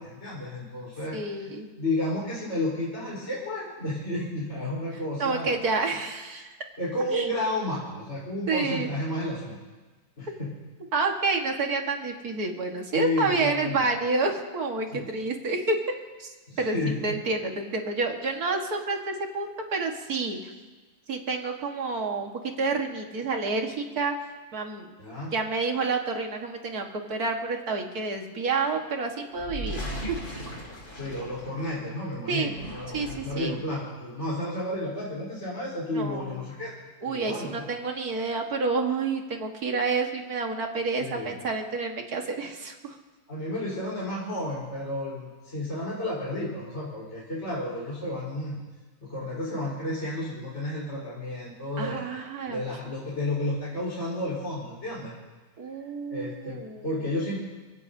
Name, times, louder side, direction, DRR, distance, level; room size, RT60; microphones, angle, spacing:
voice 1, 0.0-1.5 1.8-5.5 6.8-9.6 10.2-10.5 12.9-13.8 14.9-15.1 16.5-17.2 25.0-25.3 31.0-33.0 33.2-36.7 37.0-37.7 41.0-41.3 43.3-48.6 49.0-52.0 52.5-55.1 56.1-57.4, left 1 dB, 45° left, -7 dB, 4.6 m, -32 dB
voice 2, 1.1-1.7 5.2-6.6 7.1-7.3 8.5-8.9 10.9-15.8 16.2-20.5 21.1-22.3 22.6-24.1 24.5-24.9 25.3-29.8 30.1-30.2 32.3-32.5 32.9-33.6 35.9-36.4 37.0-42.9 51.8-52.6 55.6-56.9, right 3 dB, 70° right, 2 dB, 2.2 m, -29 dB
sound 1, 29.3-31.9 32.4-33.5, equal, 60° left, 4.0 m, -38 dB
28.5 x 16.5 x 2.8 m, 1.3 s
omnidirectional pair, 1.7 m